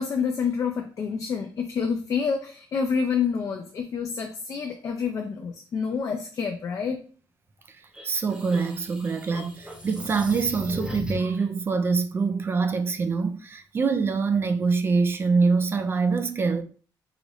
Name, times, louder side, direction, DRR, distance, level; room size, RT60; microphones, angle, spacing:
voice 1, 0.0-7.0, left 6 dB, 40° left, 0.5 m, -28 dB
sound 1, 7.9-11.4, left 1 dB, 10° right, 1.0 m, -37 dB
voice 2, 8.0-16.6, right 4 dB, 30° right, 0.4 m, -24 dB
4.9 x 2.6 x 3.0 m
cardioid pair, 165°, 8 cm